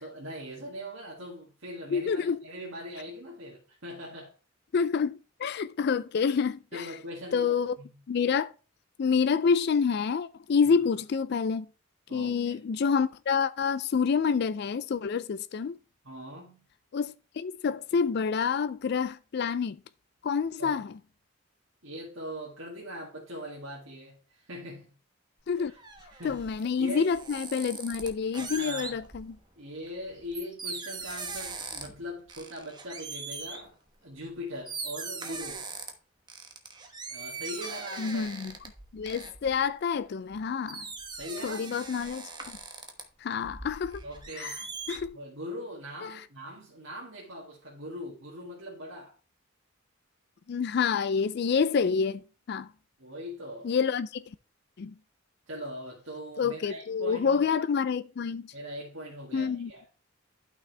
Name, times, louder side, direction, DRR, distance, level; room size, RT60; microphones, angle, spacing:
voice 1, 0.0-4.4 6.7-7.9 12.1-12.6 16.0-16.7 20.6-20.8 21.8-24.9 25.6-25.8 26.1-26.4 26.8-27.1 28.3-29.0 29.6-33.8 34.0-35.7 37.1-38.2 41.1-41.8 44.0-44.6 45.1-49.2 53.0-53.7 55.5-57.6 58.5-59.8, equal, 70° right, 2.3 m, -41 dB
voice 2, 1.9-2.4 4.7-6.9 7.3-7.7 8.1-8.5 9.0-11.7 12.1-15.8 16.9-19.8 20.2-20.9 25.5-25.7 26.2-29.4 38.0-38.5 38.9-40.9 41.4-42.6 43.2-44.0 44.4-44.6 44.9-45.2 46.0-46.2 50.5-52.7 53.6-54.2 54.8-54.9 56.4-58.5 59.3-59.7, left 6 dB, 50° left, 0.4 m, -28 dB
sound 1, 25.4-29.3 29.9-32.0 32.3-33.7 34.3-34.4 34.7-35.9 36.3-40.4 40.7-43.0 43.4-45.1, right 4 dB, 20° right, 1.1 m, -40 dB
12.0 x 5.9 x 3.3 m
head